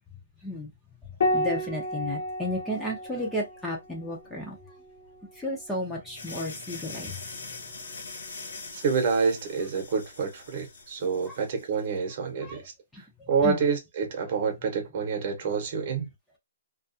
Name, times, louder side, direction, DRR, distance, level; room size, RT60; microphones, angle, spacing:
voice 1, 0.4-0.7 1.3-4.6 5.3-7.6 11.2-11.4 12.4-12.7 12.9-13.6, left 1 dB, 5° left, 0.5 m, -33 dB
Piano, 1.2-6.1 7.7-8.5, left 1 dB, 60° left, 0.7 m, -33 dB
sound 1, 6.2-11.9, left 3 dB, 80° left, 1.0 m, -43 dB
voice 2, 8.7-12.6 13.3-16.1, right 5 dB, 45° right, 0.8 m, -27 dB
2.3 x 2.3 x 2.6 m
hypercardioid pair, 160°, 0 cm